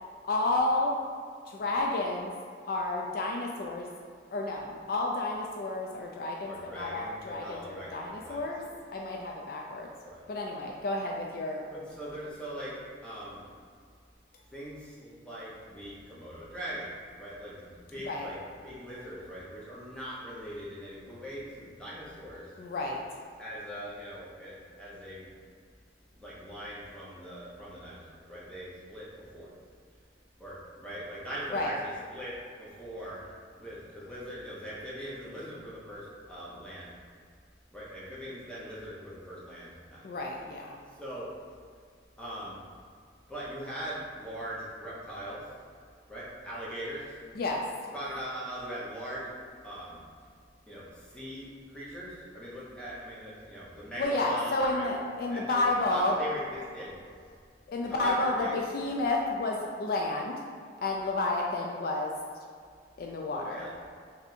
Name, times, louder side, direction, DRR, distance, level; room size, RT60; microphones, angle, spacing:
voice 1, 0.2-1.0 1.5-2.3 2.7-3.9 4.3-8.6 8.9-9.9 10.3-11.6 18.0-18.3 22.6-23.0 31.5-31.7 40.0-40.8 47.3-47.6 54.0-56.2 57.7-60.4 60.8-62.1 63.0-63.6, left 2 dB, 55° left, 0 dB, 0.3 m, -31 dB
voice 2, 6.5-8.7 10.0-10.2 11.7-13.4 14.5-18.4 18.6-22.5 23.4-25.3 26.1-29.5 30.4-36.9 37.7-40.1 40.9-41.3 42.2-42.6 43.3-45.5 46.1-47.2 47.9-49.3 49.6-50.0 50.7-54.9 55.3-57.3 57.8-58.8 63.3-63.7, equal, 5° left, -8 dB, 0.8 m, -41 dB
3.4 x 2.7 x 4.1 m, 2.1 s
head